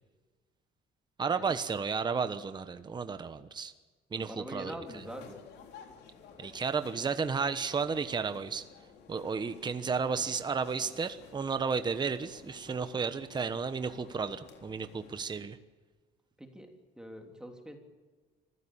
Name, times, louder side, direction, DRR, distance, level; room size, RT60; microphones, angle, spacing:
voice 1, 1.2-3.7 4.1-4.7 6.4-8.6 9.1-15.6, right 5 dB, 25° right, 10 dB, 1.1 m, -33 dB
voice 2, 4.1-5.4 16.4-16.7 17.0-17.8, equal, 5° right, 3 dB, 3.3 m, -44 dB
sound 1, 4.8-15.3, left 6 dB, 80° left, 3.5 m, -54 dB
25.5 x 15.5 x 8.8 m, 1.4 s
cardioid pair, 110°, 17 cm